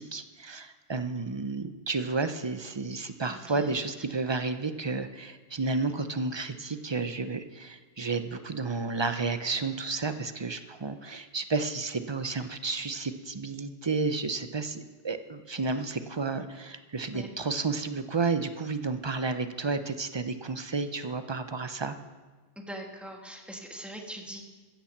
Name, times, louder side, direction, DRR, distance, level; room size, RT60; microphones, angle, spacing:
voice 1, 0.0-22.0, right 4 dB, 30° right, 10 dB, 0.5 m, -31 dB
voice 2, 3.2-4.1 17.1-17.3 22.6-24.4, right 1 dB, ahead, 2 dB, 1.5 m, -42 dB
15.0 x 7.2 x 7.3 m, 1.3 s
omnidirectional pair, 1.3 m